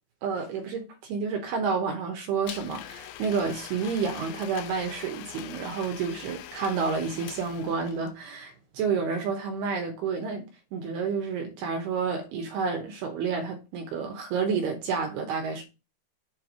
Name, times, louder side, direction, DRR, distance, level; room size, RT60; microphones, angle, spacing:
voice 1, 0.2-15.6, right 5 dB, 75° right, 2.5 m, -30 dB
Domestic sounds home sounds, 2.5-8.1, left 12 dB, 80° left, 2.8 m, -43 dB
7.9 x 3.3 x 6.2 m
omnidirectional pair, 5.7 m